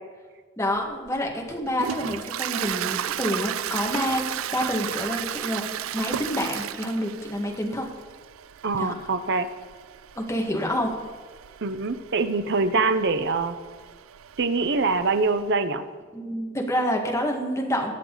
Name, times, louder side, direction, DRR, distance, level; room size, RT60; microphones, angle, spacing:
voice 1, 0.6-4.2 4.5-7.9 8.8-8.9 10.2-10.9 12.8-12.9 16.1-17.9, equal, 15° left, 0 dB, 1.8 m, -28 dB
Toilet flush, 0.8-15.5, right 10 dB, 75° right, 0.4 m, -34 dB
voice 2, 8.6-9.5 11.6-13.6 14.4-15.8, right 3 dB, 60° right, 11 dB, 0.8 m, -24 dB
22.0 x 7.7 x 4.0 m, 1.5 s
head